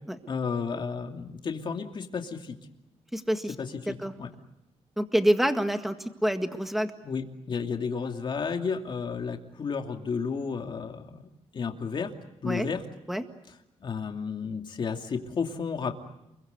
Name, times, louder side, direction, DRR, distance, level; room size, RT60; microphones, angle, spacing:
voice 1, 0.3-2.6 3.6-4.3 7.0-11.3 11.5-12.1 12.4-12.8 13.8-16.0, left 5 dB, 40° left, 4 dB, 2.7 m, -32 dB
voice 2, 3.1-3.5 3.9-4.1 5.0-6.9 12.4-12.7 13.1-13.2, equal, ahead, 7 dB, 1.8 m, -26 dB
29.0 x 22.5 x 8.1 m, 0.85 s
cardioid pair, 135°, 12 cm